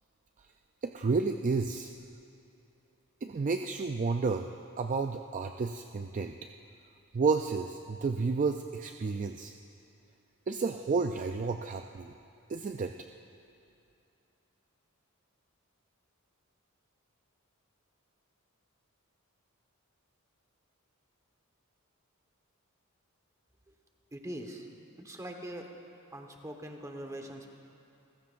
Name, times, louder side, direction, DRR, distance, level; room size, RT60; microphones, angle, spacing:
voice 1, 0.8-1.9 3.2-4.5 4.8-6.3 7.1-9.5 10.5-12.1 12.5-12.9, right 4 dB, 35° right, 5 dB, 0.4 m, -31 dB
voice 2, 24.1-24.7 25.0-25.7 26.1-27.5, right 1 dB, 15° right, 2 dB, 1.2 m, -42 dB
29.0 x 15.0 x 2.6 m, 2.7 s
head